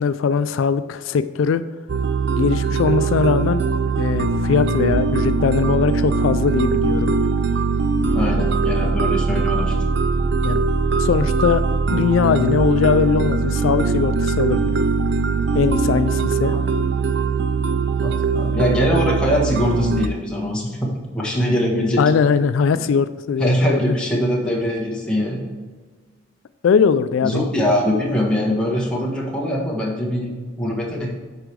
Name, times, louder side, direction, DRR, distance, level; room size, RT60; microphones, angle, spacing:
voice 1, 0.0-1.6 2.3-3.6 4.0-7.1 8.3-8.4 8.8-8.9 10.4-10.6 11.0-11.6 11.9-14.7 15.5-16.5 22.0-24.0 26.6-27.5, left 6 dB, 75° left, 13 dB, 0.3 m, -20 dB
sound 1, 1.9-20.1, right 4 dB, 55° right, 0.4 m, -21 dB
voice 2, 8.1-9.7 16.5-16.6 18.0-20.9 21.1-22.0 23.4-25.4 27.2-30.3 30.6-31.1, equal, 5° left, -4 dB, 1.5 m, -22 dB
8.1 x 5.0 x 4.7 m, 1.4 s
head